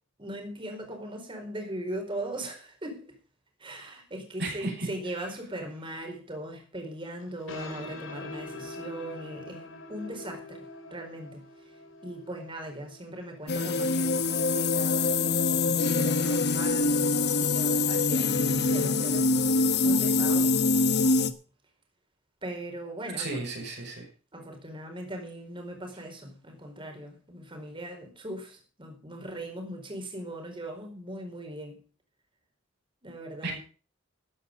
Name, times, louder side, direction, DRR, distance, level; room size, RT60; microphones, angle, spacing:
voice 1, 0.2-3.1 3.6-19.3 19.8-20.6 22.4-23.4 24.3-31.8 33.0-33.6, right 1 dB, 25° right, 3 dB, 4.7 m, -39 dB
voice 2, 4.4-4.9 23.2-24.1 33.4-33.6, right 2 dB, 60° right, 0 dB, 5.9 m, -33 dB
sound 1, 7.2-14.4, left 2 dB, 75° left, 4.1 m, -44 dB
sound 2, 13.5-21.3, left 3 dB, 55° left, 1.2 m, -24 dB
14.5 x 10.0 x 5.3 m, 0.37 s
head